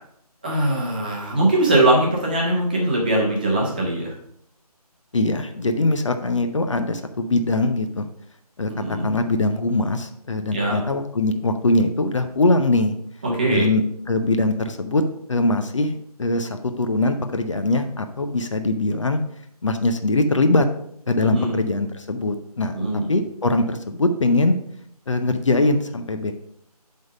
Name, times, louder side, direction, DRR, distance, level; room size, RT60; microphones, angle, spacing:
voice 1, 0.4-4.1 8.8-9.1 10.5-10.8 13.2-13.7 21.2-21.6 22.7-23.0, right 1 dB, 15° right, -4 dB, 0.8 m, -21 dB
voice 2, 5.1-8.1 8.6-13.0 13.5-15.0 15.3-19.2 19.6-20.7 21.1-22.7 23.1-24.6 25.1-26.3, left 2 dB, 50° left, 7 dB, 0.6 m, -22 dB
7.6 x 3.6 x 5.3 m, 0.71 s
figure-of-eight pair, 170°, 20 cm